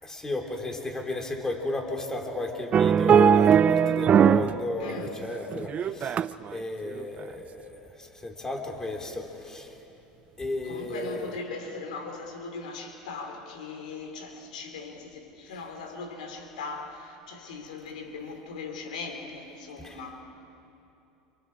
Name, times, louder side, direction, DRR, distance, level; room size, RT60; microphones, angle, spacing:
voice 1, 0.0-6.2 6.5-9.7 10.4-11.3 15.5-15.6 19.8-20.0, left 2 dB, 15° left, 2 dB, 3.7 m, -33 dB
sound 1, 2.7-4.6 4.9-6.5 7.0-7.2, right 8 dB, 35° right, 0.5 m, -20 dB
voice 2, 4.8-5.2 10.6-20.2, left 3 dB, 90° left, 4 dB, 3.6 m, -39 dB
29.5 x 27.5 x 4.8 m, 2.8 s
supercardioid pair, 105°, 4 cm